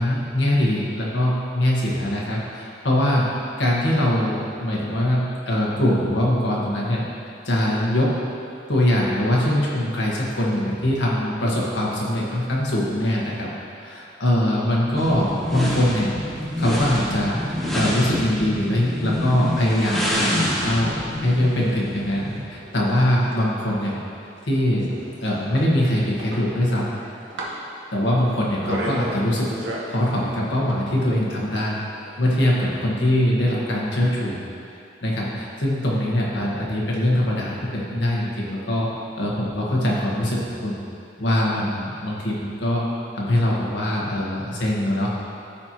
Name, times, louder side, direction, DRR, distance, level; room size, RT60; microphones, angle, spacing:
voice 1, 0.0-7.0 7.4-8.1 8.7-13.5 13.8-16.1 16.6-20.9 21.2-24.0 24.4-25.0 25.2-26.9 27.9-29.5 29.9-31.8 32.2-34.4 35.0-38.9 39.2-40.8 41.2-42.8 43.1-45.1, left 1 dB, 85° left, -4 dB, 1.5 m, -22 dB
sound 1, 15.0-22.5, left 1 dB, ahead, 1.0 m, -27 dB
sound 2, 21.4-32.8, right 1 dB, 85° right, 1.2 m, -36 dB
13.0 x 4.4 x 3.0 m, 2.5 s
head